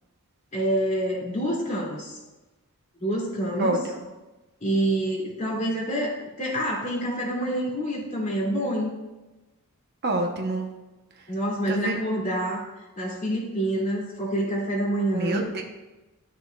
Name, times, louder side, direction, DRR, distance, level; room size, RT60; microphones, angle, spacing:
voice 1, 0.5-2.2 3.0-3.8 4.6-8.9 11.3-12.7 13.0-15.5, right 1 dB, 35° left, -4 dB, 2.5 m, -27 dB
voice 2, 3.6-4.0 10.0-10.7 11.7-12.0 15.1-15.6, right 2 dB, 50° right, 2 dB, 0.9 m, -27 dB
12.5 x 6.5 x 2.4 m, 1.1 s
head